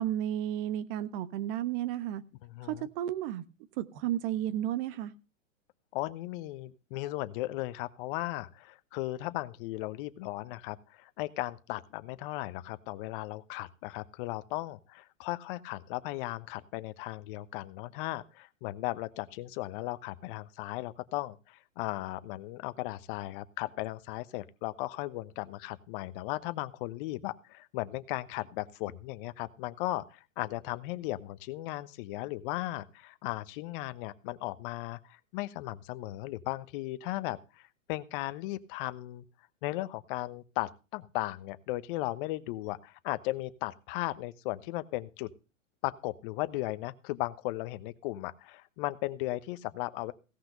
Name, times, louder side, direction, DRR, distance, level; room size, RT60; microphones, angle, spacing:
voice 1, 0.0-2.2 2.6-3.4 3.8-5.1, right 12 dB, 45° right, 14 dB, 1.3 m, -32 dB
voice 2, 2.4-2.9 5.9-39.2 39.6-45.3 45.8-50.1, left 17 dB, 40° left, 14 dB, 1.1 m, -36 dB
17.0 x 5.8 x 6.7 m, 0.33 s
hypercardioid pair, 120°, 39 cm